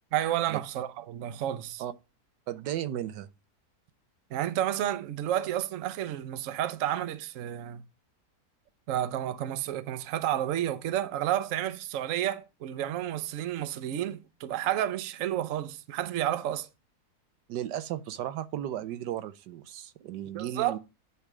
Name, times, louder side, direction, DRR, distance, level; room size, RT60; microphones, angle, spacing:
voice 1, 0.1-1.8 4.3-7.8 8.9-16.7 20.3-20.8, right 12 dB, 60° right, 0.9 m, -31 dB
voice 2, 2.5-3.3 17.5-20.8, right 11 dB, 85° right, 1.3 m, -35 dB
9.5 x 3.4 x 5.9 m
omnidirectional pair, 1.8 m